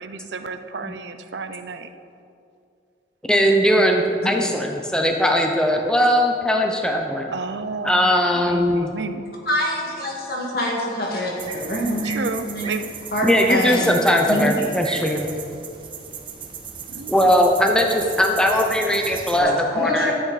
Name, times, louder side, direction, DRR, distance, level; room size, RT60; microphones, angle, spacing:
voice 1, 0.0-1.9 7.3-9.3 12.0-12.9 16.9-17.3, right 4 dB, 80° right, 9 dB, 0.6 m, -32 dB
voice 2, 3.3-7.3 7.8-8.9 13.2-15.3 17.1-20.1, equal, 5° left, 2 dB, 0.7 m, -19 dB
voice 3, 9.4-12.2 12.5-12.7 13.1-13.9 14.3-14.6 19.3-20.1, equal, 60° left, -2 dB, 2.0 m, -25 dB
sound 1, 11.4-19.4, right 6 dB, 30° right, 0.9 m, -36 dB
12.0 x 8.7 x 4.1 m, 2.5 s
head